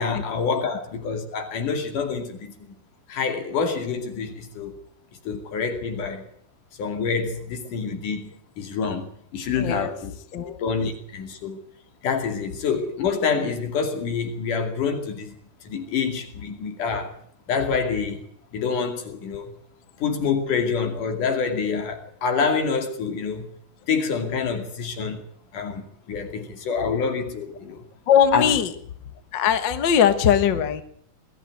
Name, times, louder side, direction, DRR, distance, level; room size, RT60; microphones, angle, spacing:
voice 1, 0.0-2.5 3.1-4.8 5.3-6.2 6.8-9.1 9.3-10.1 10.6-11.6 12.0-15.4 15.6-17.1 17.5-18.2 18.5-19.5 20.0-23.5 23.9-25.2 25.5-27.8 28.3-28.5, left 5 dB, 70° left, 5 dB, 4.1 m, -27 dB
voice 2, 9.6-9.9 10.3-10.6 28.1-28.7 29.3-30.8, left 8 dB, 50° left, 10 dB, 1.5 m, -20 dB
20.5 x 13.5 x 9.2 m, 0.63 s
omnidirectional pair, 3.8 m